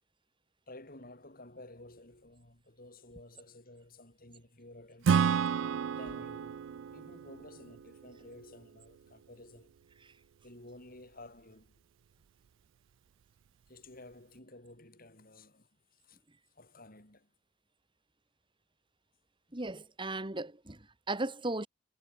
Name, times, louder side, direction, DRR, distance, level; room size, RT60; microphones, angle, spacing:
voice 1, 0.7-5.4 5.9-6.6 6.9-9.8 10.4-11.8 13.7-16.2 16.5-17.3, left 2 dB, 50° left, 6.9 m, -53 dB
Acoustic guitar / Strum, 5.0-8.6, right 7 dB, 85° right, 0.4 m, -31 dB
voice 2, 19.5-21.7, right 2 dB, 25° right, 2.0 m, -36 dB
head